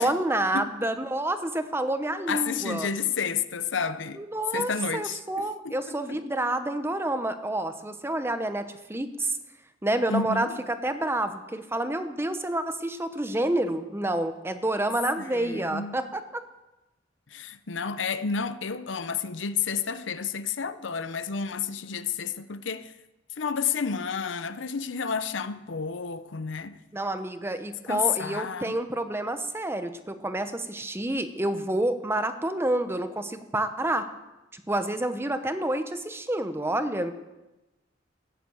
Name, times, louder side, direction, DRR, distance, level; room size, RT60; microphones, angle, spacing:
voice 1, 0.0-2.9 4.2-9.4 9.8-16.4 26.9-34.1 34.5-37.1, right 1 dB, 15° right, 0.9 m, -28 dB
voice 2, 2.3-4.2 4.5-6.0 10.1-10.6 15.2-16.0 17.3-22.9 23.4-26.8 27.9-28.7, left 6 dB, 75° left, 0.7 m, -30 dB
14.5 x 9.9 x 7.9 m
head